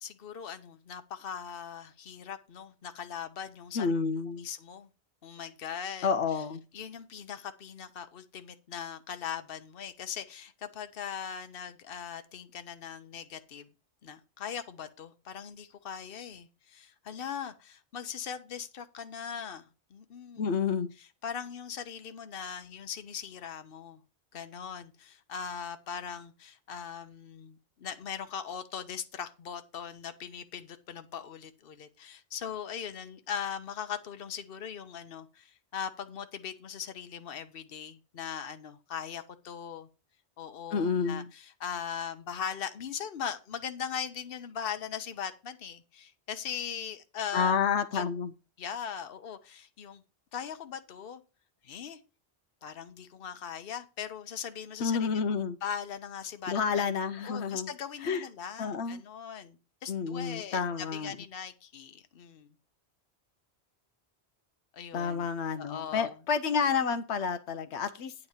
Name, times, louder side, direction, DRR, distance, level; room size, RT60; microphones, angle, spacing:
voice 1, 0.0-3.9 4.4-4.9 5.2-6.1 6.7-13.7 14.0-20.4 21.0-24.0 24.3-39.9 40.4-47.6 47.9-48.0 48.6-50.0 50.3-51.2 51.6-52.0 52.6-55.1 55.6-56.9 57.2-62.5 64.7-65.3 65.6-66.2, left 8 dB, 60° left, 1.0 m, -40 dB
voice 2, 3.7-4.5 6.0-6.6 20.4-20.9 40.7-41.3 47.3-48.3 54.8-55.6 56.5-57.7 58.0-58.2 58.6-59.0 59.9-61.1 64.9-68.1, left 6 dB, 85° left, 1.0 m, -29 dB
9.6 x 3.9 x 7.1 m
omnidirectional pair, 1.1 m